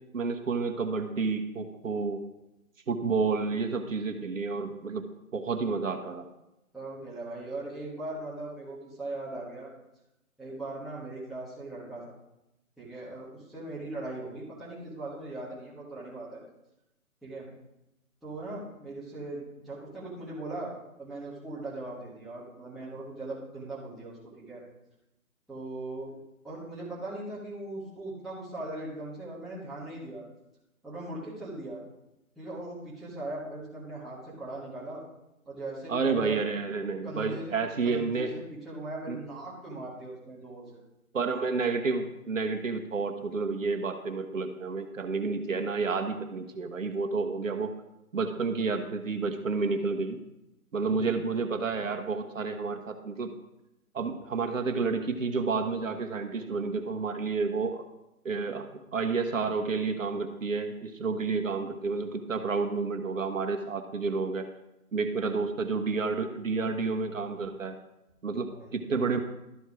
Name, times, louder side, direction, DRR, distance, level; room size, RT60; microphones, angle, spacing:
voice 1, 0.1-2.2 2.9-5.0 5.3-6.3 35.9-38.3 39.1-39.2 41.1-47.7 48.1-50.2 50.7-53.3 53.9-57.8 58.2-64.5 64.9-67.7 68.2-69.2, right 4 dB, 60° right, 6 dB, 1.3 m, -30 dB
voice 2, 6.7-9.7 10.4-12.2 12.8-16.4 17.2-17.5 18.2-20.7 21.0-24.2 24.5-24.6 25.5-26.1 26.4-30.2 30.8-31.8 32.3-35.0 35.4-36.4 37.0-37.5 37.8-40.7 50.9-51.1 68.3-68.8, right 2 dB, ahead, -11 dB, 1.5 m, -39 dB
12.5 x 4.6 x 4.9 m, 0.91 s
figure-of-eight pair, 155°, 44 cm